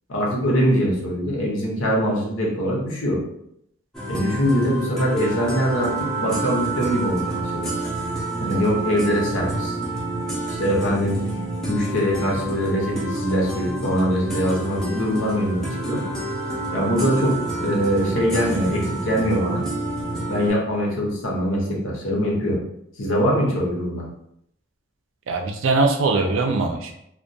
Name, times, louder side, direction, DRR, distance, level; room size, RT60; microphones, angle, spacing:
voice 1, 0.1-3.2 4.1-7.7 8.4-9.8 10.6-11.2 11.7-16.0 16.7-19.6 20.3-22.6 23.0-24.0, equal, 75° left, -3 dB, 0.8 m, -23 dB
sound 1, 3.9-20.5, right 2 dB, 5° left, 0.5 m, -28 dB
voice 2, 25.3-26.9, right 3 dB, 75° right, 4 dB, 0.4 m, -21 dB
2.2 x 2.1 x 2.6 m, 0.75 s
head